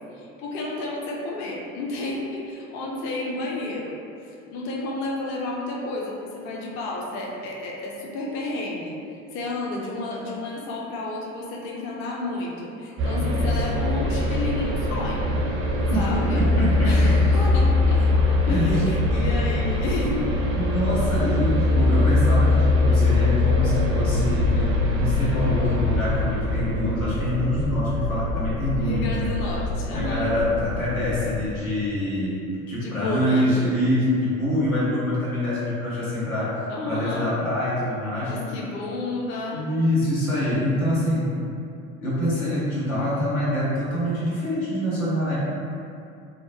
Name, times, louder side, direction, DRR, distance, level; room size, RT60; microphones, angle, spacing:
voice 1, 0.1-4.0 4.2-15.4 15.9-16.4 16.8-18.0 18.3-20.6 28.8-30.3 32.8-33.5 36.7-37.3 38.2-39.6, left 2 dB, 30° left, -3 dB, 0.4 m, -31 dB
sound 1, 13.0-31.4, left 2 dB, 35° right, 0.4 m, -22 dB
voice 2, 16.3-17.2 18.5-18.9 20.6-29.2 29.9-32.4 32.7-38.3 39.5-41.4 42.0-45.3, left 1 dB, 85° left, -9 dB, 0.9 m, -25 dB
2.3 x 2.1 x 2.6 m, 2.5 s
figure-of-eight pair, 70°, 41 cm